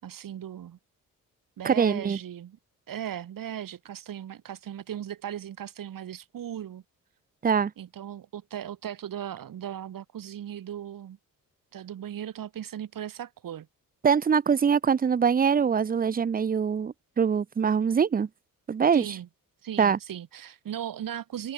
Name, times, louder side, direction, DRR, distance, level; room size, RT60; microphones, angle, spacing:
voice 1, 0.0-0.8 1.6-2.6 2.9-6.8 7.8-11.2 11.7-13.7 18.9-19.3 19.6-21.5, right 10 dB, 70° right, 6.8 m, -37 dB
voice 2, 1.6-2.2 7.4-7.7 14.0-18.3 18.7-19.1 19.8-20.0, right 6 dB, 25° right, 0.6 m, -23 dB
cardioid pair, 80°, 34 cm